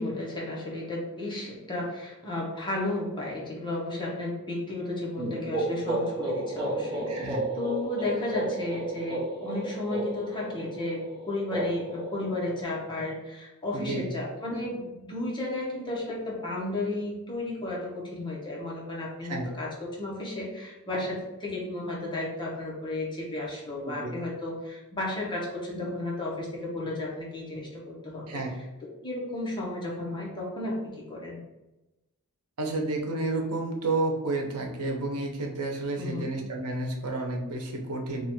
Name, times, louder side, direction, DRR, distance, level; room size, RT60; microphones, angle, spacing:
voice 1, 0.0-7.3 7.5-28.4 29.0-31.4 36.0-36.3, left 2 dB, 20° left, -4 dB, 1.0 m, -33 dB
sound 1, 5.2-12.9, right 1 dB, 20° right, 0.7 m, -33 dB
voice 2, 7.1-7.4 13.7-14.1 19.3-19.5 23.8-24.1 28.3-28.5 32.6-38.3, right 2 dB, 85° right, 1 dB, 0.8 m, -31 dB
3.0 x 2.5 x 4.3 m, 0.99 s
head